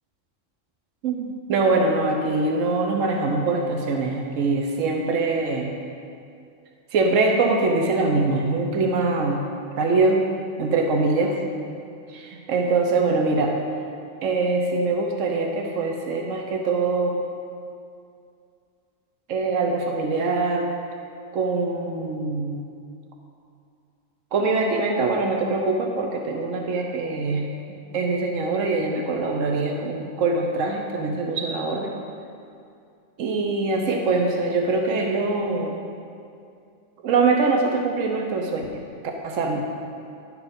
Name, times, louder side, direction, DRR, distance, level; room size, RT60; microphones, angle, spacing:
voice 1, 1.0-5.7 6.9-9.5 9.8-10.3 10.6-11.4 12.1-13.6 14.2-17.2 19.3-20.7 21.3-22.6 24.3-27.5 27.9-31.9 33.2-35.7 37.0-38.8 39.2-39.6, right 3 dB, 85° right, 2 dB, 1.1 m, -23 dB
11.0 x 4.8 x 5.2 m, 2.4 s
omnidirectional pair, 1.3 m